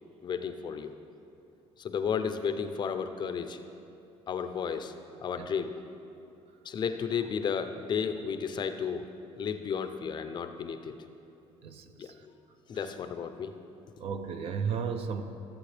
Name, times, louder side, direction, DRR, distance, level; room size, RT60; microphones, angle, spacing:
voice 1, 0.2-0.9 1.8-3.6 4.3-4.9 5.2-5.7 6.6-9.1 9.4-10.9 12.0-12.3 12.7-13.5, left 6 dB, 40° left, 9 dB, 0.5 m, -33 dB
voice 2, 11.6-12.1 12.8-12.9 14.0-15.2, right 6 dB, 60° right, 7 dB, 0.7 m, -34 dB
14.0 x 7.5 x 3.3 m, 2.7 s
cardioid pair, 120°, 11 cm